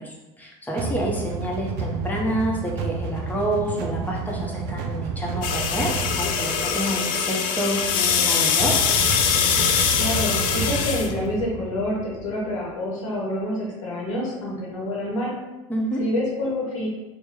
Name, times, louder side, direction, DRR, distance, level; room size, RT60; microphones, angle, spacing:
voice 1, 0.0-8.7 15.7-16.0, right 1 dB, 10° left, -2 dB, 0.9 m, -28 dB
sound 1, 0.8-12.7, right 3 dB, 65° right, 0.4 m, -31 dB
sound 2, 5.4-11.1, left 7 dB, 60° left, 0.4 m, -23 dB
voice 2, 9.9-15.3 16.0-16.9, left 1 dB, 80° left, -4 dB, 0.8 m, -27 dB
2.9 x 2.2 x 3.5 m, 1.1 s
hypercardioid pair, 65°, 16 cm